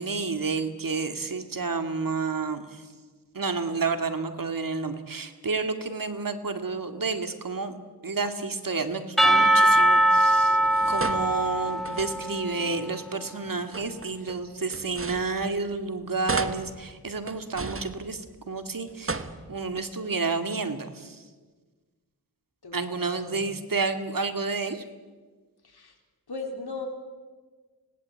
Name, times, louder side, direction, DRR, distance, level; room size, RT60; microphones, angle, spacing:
voice 1, 0.0-2.8 3.3-7.7 8.0-10.6 10.9-21.2 22.7-24.8, right 4 dB, 60° right, 8 dB, 2.2 m, -30 dB
Percussion / Church bell, 9.2-13.2, right 1 dB, ahead, 2.6 m, -22 dB
sound 1, 10.6-12.5 13.5-15.9 16.2-18.5 18.9-19.9, right 3 dB, 35° right, 1.4 m, -36 dB
voice 2, 22.6-23.5 25.6-26.0 26.3-26.9, left 3 dB, 75° left, 3 dB, 4.0 m, -38 dB
26.5 x 18.5 x 8.6 m, 1.4 s
wide cardioid pair, 60°, 38 cm